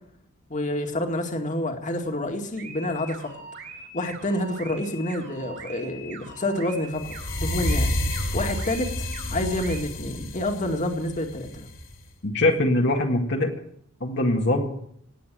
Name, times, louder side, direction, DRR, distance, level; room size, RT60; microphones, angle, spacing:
voice 1, 0.5-3.3 3.9-7.9 8.3-11.7, left 1 dB, 40° left, 3 dB, 2.1 m, -28 dB
sound 1, 2.6-9.8, right 2 dB, 60° right, 4.6 m, -42 dB
sound 2, 7.0-12.0, left 1 dB, 75° left, 3.7 m, -29 dB
voice 2, 12.2-13.5 14.0-14.7, left 1 dB, 60° left, 0 dB, 1.8 m, -22 dB
18.5 x 8.7 x 7.5 m, 0.68 s
head